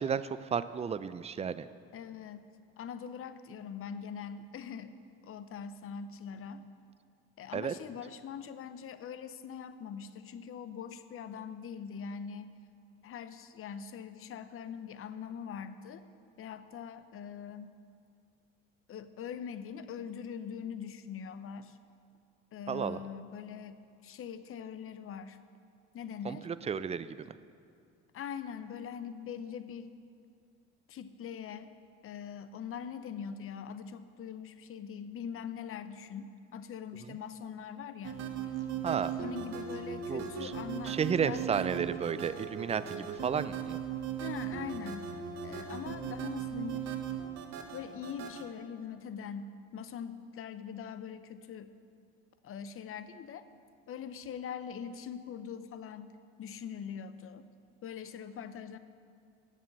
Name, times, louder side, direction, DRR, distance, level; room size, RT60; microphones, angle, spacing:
voice 1, 0.0-1.7 7.5-7.7 22.7-23.0 26.2-27.3 37.1-37.2 38.8-39.1 40.1-40.5 40.8-43.8, right 7 dB, 20° right, 14 dB, 0.4 m, -33 dB
voice 2, 1.9-2.5 2.8-5.0 5.2-6.7 7.4-12.5 13.0-16.0 16.4-17.8 18.9-21.8 22.5-25.4 25.9-26.5 28.1-30.0 30.9-31.7 32.0-38.3 39.2-41.8 44.2-45.1 45.4-46.9 47.7-51.7 52.4-53.4 53.9-57.5 57.8-58.8, left 7 dB, 45° left, 12 dB, 0.7 m, -42 dB
sound 1, 38.0-48.4, right 8 dB, 55° right, 1.2 m, -38 dB
8.4 x 7.3 x 7.4 m, 2.3 s
supercardioid pair, 75°, 31 cm